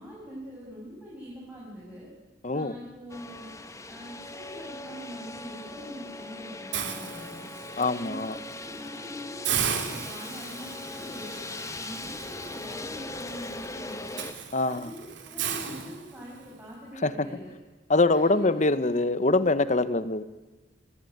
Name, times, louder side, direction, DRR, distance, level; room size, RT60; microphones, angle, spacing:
voice 1, 0.0-2.1 2.5-3.5 3.8-7.5 8.0-8.3 8.6-11.4 11.8-14.3 14.7-17.5 18.1-18.5, equal, 10° right, -6 dB, 7.5 m, -43 dB
voice 2, 2.4-2.8 7.8-8.3 14.5-14.9 17.0-17.3 17.9-20.2, left 2 dB, 40° left, 14 dB, 1.1 m, -24 dB
sound 1, 3.1-14.3, left 2 dB, 15° left, 1.3 m, -40 dB
Hiss, 6.7-7.8 8.3-8.5 8.9-9.0 9.4-16.5, right 8 dB, 70° right, 3.2 m, -35 dB
27.0 x 20.0 x 9.6 m, 1.2 s
head